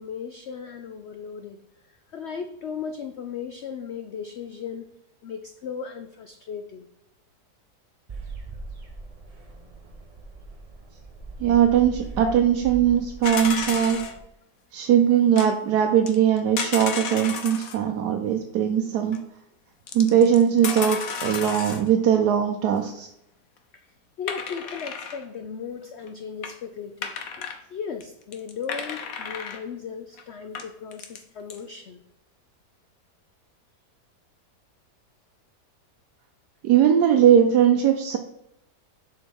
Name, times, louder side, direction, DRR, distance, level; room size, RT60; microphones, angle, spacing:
voice 1, 0.0-1.6 2.1-4.9 5.2-6.9 12.2-12.4 13.9-14.1 23.7-32.0, left 6 dB, 85° left, 7 dB, 0.5 m, -36 dB
sound 1, 8.1-14.2, right 3 dB, 30° right, 0.7 m, -40 dB
voice 2, 11.4-14.0 14.7-19.2 19.9-23.1 36.6-38.2, right 9 dB, 75° right, 4 dB, 1.2 m, -20 dB
sound 2, 13.2-14.1 15.4-15.5 16.1-17.8 19.1-19.2 19.9-21.9 24.3-25.2 26.0-26.1 26.4-26.5 27.0-27.6 28.0-28.1 28.3-29.6 30.2-30.3 30.5-31.2 31.5-31.6, left 6 dB, 60° left, 1.2 m, -32 dB
7.3 x 3.7 x 6.3 m, 0.81 s
omnidirectional pair, 1.8 m